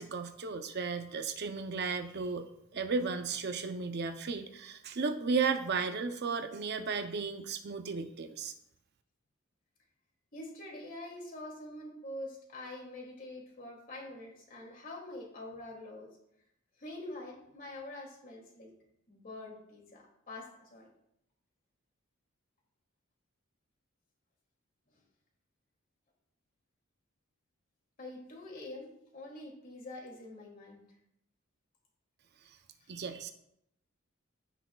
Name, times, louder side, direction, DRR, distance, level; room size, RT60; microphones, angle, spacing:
voice 1, 0.0-2.5 2.7-8.5 32.9-33.3, right 4 dB, 50° right, 8 dB, 0.6 m, -34 dB
voice 2, 10.3-16.1 16.8-18.7 19.1-20.9 24.9-25.0 28.0-30.8, left 1 dB, 40° left, -1 dB, 2.5 m, -45 dB
16.0 x 6.0 x 2.3 m, 0.78 s
head